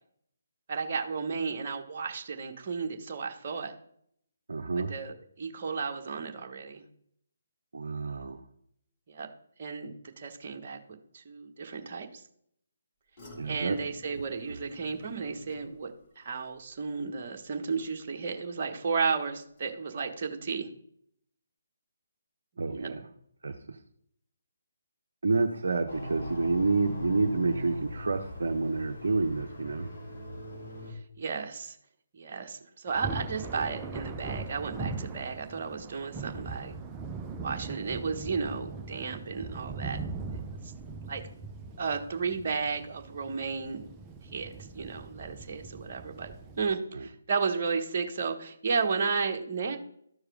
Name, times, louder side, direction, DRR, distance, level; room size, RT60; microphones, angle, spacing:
voice 1, 0.7-3.7 4.9-6.8 9.1-9.3 9.6-12.2 13.5-20.7 22.8-22.9 30.9-31.8 32.1-36.7 37.4-40.0 41.1-41.2 41.8-43.9 44.3-49.8, right 5 dB, 40° right, 3 dB, 1.2 m, -33 dB
voice 2, 4.5-4.9 7.7-8.4 13.4-13.8 14.5-14.6 22.6-23.1 23.4-23.8 25.2-29.9 46.9-47.1, right 3 dB, 60° right, 4 dB, 0.8 m, -29 dB
sound 1, 13.2-18.4 18.7-19.2 19.6-19.7, equal, 35° left, 2.9 m, -54 dB
sound 2, 25.9-30.9, equal, 50° left, 2.5 m, -40 dB
Thunder, 32.9-46.7, right 3 dB, 15° right, 0.8 m, -40 dB
12.5 x 4.7 x 5.0 m, 0.69 s
figure-of-eight pair, 145°, 0 cm